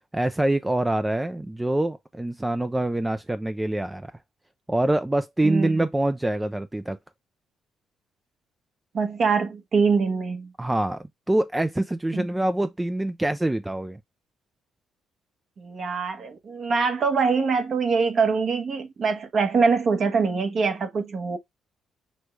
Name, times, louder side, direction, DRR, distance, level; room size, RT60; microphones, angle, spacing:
voice 1, 0.1-4.1 4.7-7.0 10.6-14.0, right 1 dB, 10° right, 0.4 m, -25 dB
voice 2, 5.4-5.8 8.9-10.5 12.1-12.3 15.6-21.4, right 5 dB, 50° right, 1.2 m, -24 dB
6.2 x 2.3 x 3.1 m
cardioid pair, 90°, 0 cm